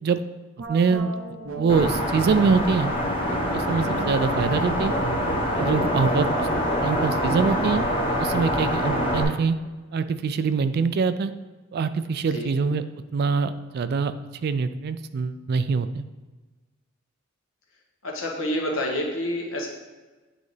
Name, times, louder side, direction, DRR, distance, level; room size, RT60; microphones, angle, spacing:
sound 1, 0.6-2.9 3.6-7.0, right 3 dB, 80° right, 0.8 m, -38 dB
voice 1, 0.7-1.1 1.6-2.9 3.3-4.9 5.6-6.5 6.8-7.9 8.2-9.5 9.9-11.3 11.7-12.8 13.1-14.1 14.4-16.0, right 5 dB, 50° right, 12 dB, 0.3 m, -24 dB
sound 2, 1.7-9.2, equal, 25° left, 1.1 m, -25 dB
voice 2, 18.0-19.7, left 1 dB, 75° left, 0 dB, 1.3 m, -28 dB
8.6 x 4.0 x 3.3 m, 1.2 s
head